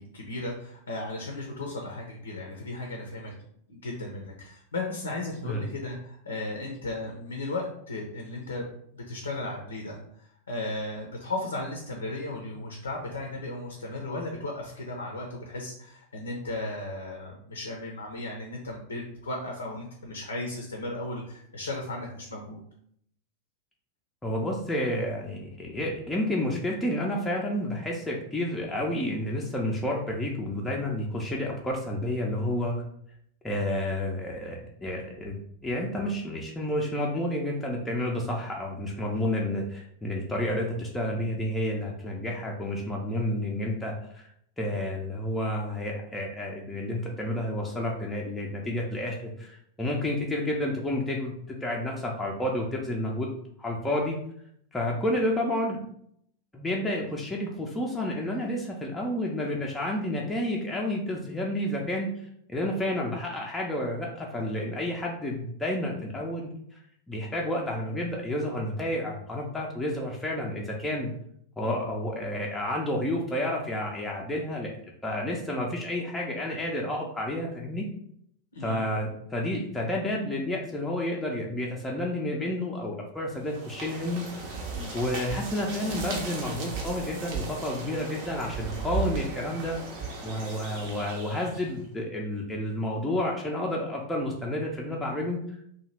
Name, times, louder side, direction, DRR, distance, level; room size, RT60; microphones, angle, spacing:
voice 1, 0.0-3.3 3.7-8.7 8.9-22.6 78.5-78.9 84.7-85.0, left 2 dB, 70° left, 1 dB, 0.5 m, -35 dB
voice 2, 24.2-32.8 33.4-44.2 44.6-51.3 51.6-53.3 53.6-54.2 54.7-55.8 56.5-62.1 62.5-66.5 67.1-71.1 71.6-74.7 75.0-77.9 78.6-84.6 84.9-89.8 90.2-95.4, left 1 dB, 10° left, -2 dB, 0.5 m, -30 dB
sound 1, 83.4-91.8, right 4 dB, 45° right, 0.6 m, -36 dB
2.8 x 2.2 x 3.2 m, 0.69 s
figure-of-eight pair, 90°, 0 cm